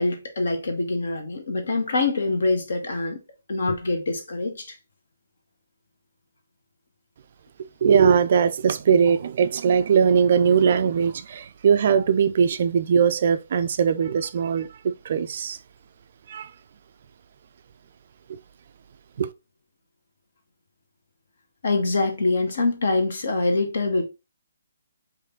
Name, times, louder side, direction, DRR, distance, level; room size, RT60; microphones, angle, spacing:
voice 1, 0.0-3.2 3.5-4.8 21.6-24.1, left 3 dB, 55° left, 1.2 m, -24 dB
voice 2, 7.8-14.7 15.0-15.6 16.3-16.5 19.2-19.3, right 7 dB, 45° right, 0.4 m, -20 dB
5.1 x 2.6 x 3.7 m
figure-of-eight pair, 135°, 0 cm